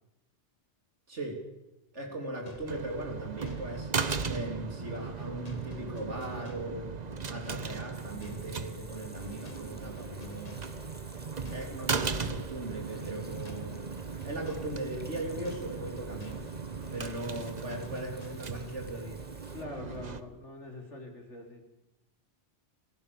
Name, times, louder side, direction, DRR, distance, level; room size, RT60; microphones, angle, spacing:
voice 1, 1.1-1.4 1.9-6.9 7.3-10.6 11.5-13.8 14.2-16.5 16.9-19.2 19.5-19.6, right 1 dB, 85° right, 1 dB, 3.8 m, -39 dB
sound 1, 2.5-18.9, left 3 dB, 35° left, 1.4 m, -55 dB
sound 2, 2.7-20.2, right 5 dB, 40° right, 1.1 m, -37 dB
Water tap faucet / Sink (filling or washing), 7.9-19.6, right 1 dB, 10° right, 1.8 m, -56 dB
voice 2, 19.5-21.7, left 2 dB, 80° left, 2 dB, 4.1 m, -44 dB
28.5 x 16.0 x 7.0 m, 0.94 s
omnidirectional pair, 1.2 m